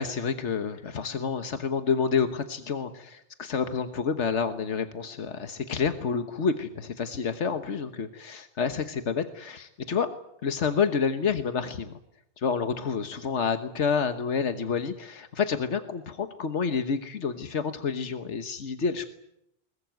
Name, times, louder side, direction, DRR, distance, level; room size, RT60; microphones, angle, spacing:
voice 1, 0.0-10.2 10.4-11.9 12.4-19.1, left 6 dB, 90° left, 9 dB, 1.6 m, -29 dB
22.0 x 20.5 x 9.3 m, 0.79 s
omnidirectional pair, 1.2 m